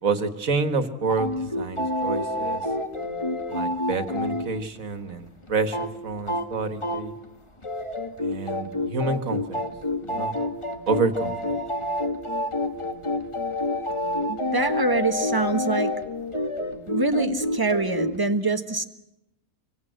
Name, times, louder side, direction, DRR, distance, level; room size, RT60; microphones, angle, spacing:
voice 1, 0.0-2.6 3.5-7.1 8.2-9.7 10.0-10.4 10.9-11.5, right 4 dB, 65° right, 9 dB, 2.1 m, -28 dB
sound 1, 1.1-4.5 4.7-4.8 5.1-5.2 5.5-5.9 6.2-6.5 6.8-7.3 7.6-18.2, left 1 dB, 20° left, 1.6 m, -28 dB
voice 2, 14.3-15.9 16.9-18.8, right 3 dB, 15° right, 7 dB, 1.4 m, -25 dB
26.5 x 24.0 x 8.0 m, 0.86 s
omnidirectional pair, 1.5 m